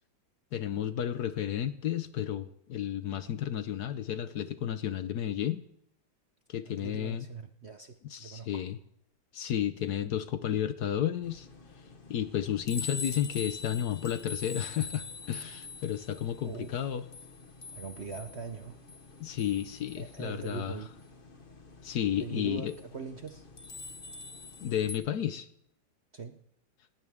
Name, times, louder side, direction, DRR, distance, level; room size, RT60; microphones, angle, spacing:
voice 1, 0.5-5.6 6.5-7.3 8.0-8.8 9.3-11.5 12.1-17.0 19.2-20.8 21.8-22.7 24.6-25.5, left 10 dB, 65° left, 12 dB, 1.2 m, -32 dB
voice 2, 6.7-8.6 16.4-16.8 17.7-18.8 20.0-20.9 22.2-23.5 26.1-26.4, right 5 dB, 50° right, 7 dB, 0.8 m, -41 dB
sound 1, 11.2-25.0, left 4 dB, 30° left, 1.3 m, -45 dB
19.0 x 18.5 x 3.6 m, 0.75 s
omnidirectional pair, 2.1 m